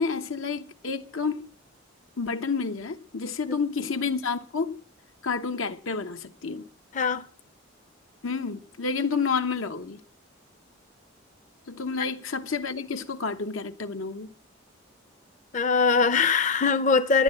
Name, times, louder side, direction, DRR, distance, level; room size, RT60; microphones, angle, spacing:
voice 1, 0.0-1.5 2.2-4.8 5.2-6.7 8.2-10.0 11.7-14.3, left 5 dB, 85° left, 1.1 m, -30 dB
voice 2, 6.9-7.2 15.5-17.2, left 5 dB, 40° left, 0.6 m, -22 dB
12.0 x 10.5 x 7.6 m
head